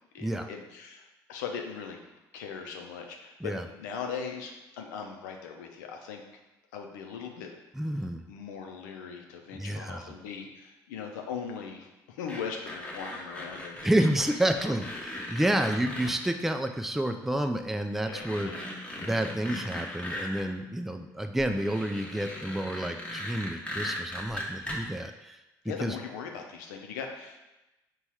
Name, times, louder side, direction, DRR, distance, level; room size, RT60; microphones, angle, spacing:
voice 1, 0.1-1.0 1.3-2.0 2.3-6.2 6.7-7.5 8.3-13.9 14.4-14.8 15.4-15.7 18.1-18.6 25.7-27.4, left 6 dB, 85° left, 2 dB, 0.5 m, -39 dB
voice 2, 7.7-8.3 9.5-10.2 13.8-18.6 19.0-25.4 25.8-26.0, right 1 dB, 5° right, 6 dB, 0.3 m, -29 dB
sound 1, 12.3-16.1 17.3-17.4 17.9-20.4 21.4-24.8, left 1 dB, 15° left, 1.1 m, -39 dB
4.0 x 2.3 x 4.6 m, 1.0 s
hypercardioid pair, 60°, 9 cm